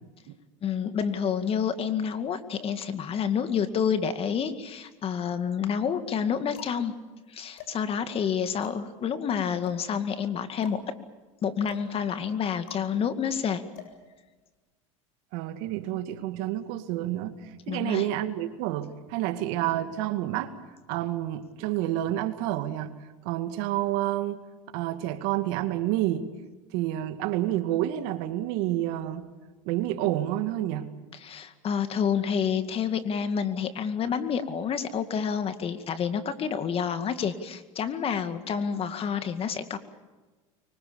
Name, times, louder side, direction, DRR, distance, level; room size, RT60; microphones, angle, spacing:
voice 1, 0.6-6.9 7.3-10.9 11.4-13.6 17.7-18.1 31.2-39.8, left 7 dB, 35° left, 10 dB, 2.2 m, -29 dB
sound 1, 4.6-5.3 6.0-14.7, left 6 dB, 65° left, 7.3 m, -50 dB
voice 2, 15.3-20.5 20.9-22.9 23.2-24.4 24.7-26.3 26.7-29.3 29.6-30.9, right 13 dB, 65° right, 9 dB, 2.3 m, -29 dB
25.0 x 24.5 x 7.1 m, 1.3 s
supercardioid pair, 105°, 17 cm